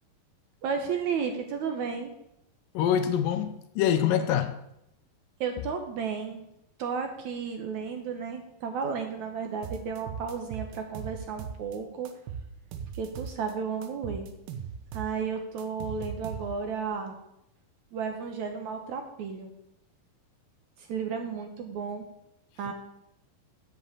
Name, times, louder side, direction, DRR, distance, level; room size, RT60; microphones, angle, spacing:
voice 1, 0.6-2.1 5.4-6.4 6.8-12.1 12.9-14.3 14.9-17.2 17.9-19.5 20.8-22.1 22.6-22.7, right 6 dB, 65° right, 2.1 m, -33 dB
voice 2, 2.7-4.6, left 9 dB, 75° left, 2.2 m, -25 dB
sound 1, 9.6-11.8 12.1-13.5 13.8-16.8, right 7 dB, 85° right, 2.9 m, -39 dB
7.7 x 7.6 x 8.4 m
omnidirectional pair, 4.2 m